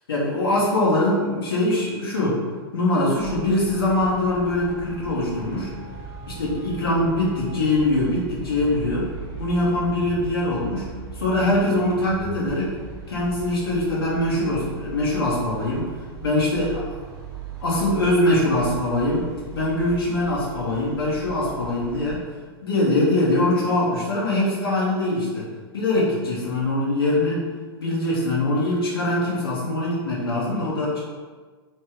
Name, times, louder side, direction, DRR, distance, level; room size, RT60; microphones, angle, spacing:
voice 1, 0.1-2.4 2.7-5.7 6.3-9.1 9.4-10.9 11.1-12.7 13.1-15.9 16.2-16.9 17.6-19.3 19.5-22.2 22.6-25.5 25.7-27.4 27.8-31.0, left 1 dB, 65° left, -6 dB, 1.1 m, -22 dB
Traffic noise roadway noise, 3.2-22.2, right 6 dB, 30° right, 1.1 m, -38 dB
3.3 x 3.2 x 4.6 m, 1.5 s
figure-of-eight pair, 100°, 13 cm